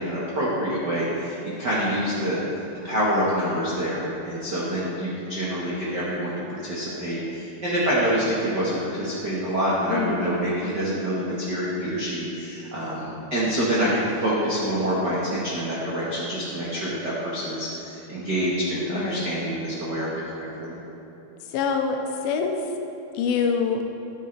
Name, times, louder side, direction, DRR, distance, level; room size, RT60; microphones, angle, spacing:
voice 1, 0.0-2.4 2.8-20.8, equal, 85° right, -8 dB, 0.9 m, -26 dB
voice 2, 9.9-10.3 18.9-19.3 21.5-22.0 22.2-22.6 23.2-23.8, left 6 dB, 85° left, 3 dB, 2.6 m, -25 dB
13.0 x 8.2 x 3.3 m, 3.0 s
omnidirectional pair, 4.3 m